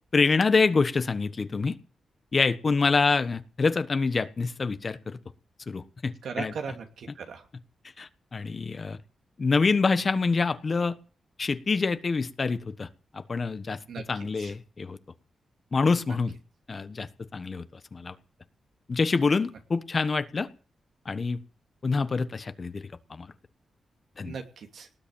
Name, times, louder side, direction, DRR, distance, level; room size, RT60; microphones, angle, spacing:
voice 1, 0.1-1.8 2.3-5.2 5.7-6.8 8.0-9.0 9.4-11.0 11.4-12.9 13.1-15.0 15.7-16.3 16.7-17.7 17.9-18.1 18.9-20.5 21.0-21.4 21.8-23.3 24.2-24.4, left 4 dB, 40° left, 11 dB, 1.3 m, -26 dB
voice 2, 6.2-7.4 13.9-14.0 14.4-14.5 24.2-24.9, right 6 dB, 80° right, 4 dB, 2.8 m, -37 dB
19.0 x 8.3 x 8.8 m, 0.41 s
cardioid pair, 90°, 0 cm